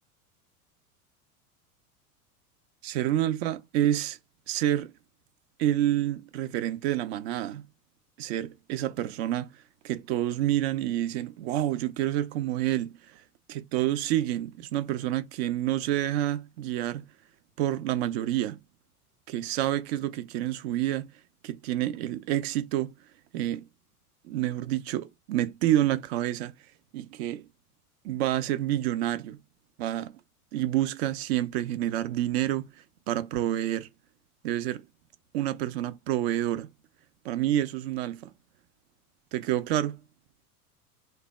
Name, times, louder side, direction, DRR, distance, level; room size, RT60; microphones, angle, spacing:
voice 1, 2.8-4.2 4.5-4.9 5.6-7.7 8.2-13.2 13.5-17.1 17.6-18.6 19.3-21.1 21.4-22.9 23.3-23.7 24.2-26.6 26.9-27.5 28.0-29.4 29.8-30.2 30.5-32.7 33.1-33.9 34.4-34.8 35.3-36.7 37.2-38.3 39.3-40.0, right 13 dB, 45° right, 0.5 m, -28 dB
3.2 x 2.2 x 4.0 m
figure-of-eight pair, 85°, 46 cm